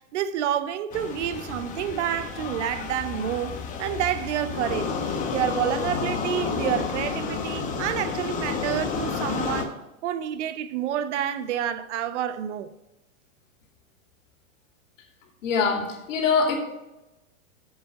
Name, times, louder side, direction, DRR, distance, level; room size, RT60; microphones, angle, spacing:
voice 1, 0.0-4.9 5.3-9.7 10.0-12.7, right 10 dB, 60° right, 0.7 m, -28 dB
sound 1, 0.9-9.7, left 5 dB, 20° left, 0.9 m, -31 dB
voice 2, 15.4-16.6, left 5 dB, 65° left, 2.5 m, -23 dB
7.3 x 7.0 x 5.4 m
supercardioid pair, 150°, 41 cm